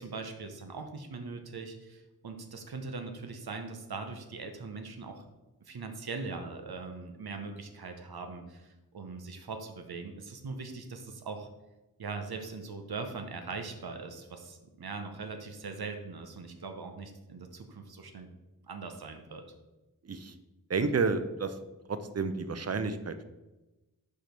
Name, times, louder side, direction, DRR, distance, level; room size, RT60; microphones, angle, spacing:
voice 1, 0.0-5.3 5.6-11.5 12.0-18.3 18.7-19.4, right 4 dB, 80° right, 5 dB, 0.8 m, -41 dB
voice 2, 20.7-21.5 21.9-23.2, right 4 dB, 45° right, 11 dB, 0.6 m, -30 dB
4.9 x 4.5 x 5.2 m, 1.0 s
wide cardioid pair, 55°, 37 cm